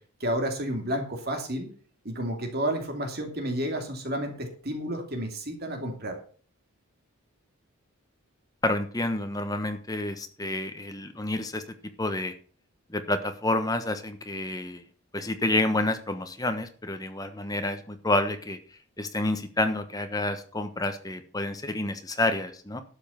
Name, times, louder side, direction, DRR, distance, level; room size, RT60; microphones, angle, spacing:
voice 1, 0.2-1.7 2.0-6.2, right 1 dB, 45° right, 4 dB, 2.8 m, -31 dB
voice 2, 8.6-11.6 12.0-12.3 12.9-14.8 15.1-18.6 19.0-22.8, left 2 dB, 15° left, 8 dB, 1.2 m, -29 dB
12.0 x 7.3 x 5.8 m, 0.43 s
head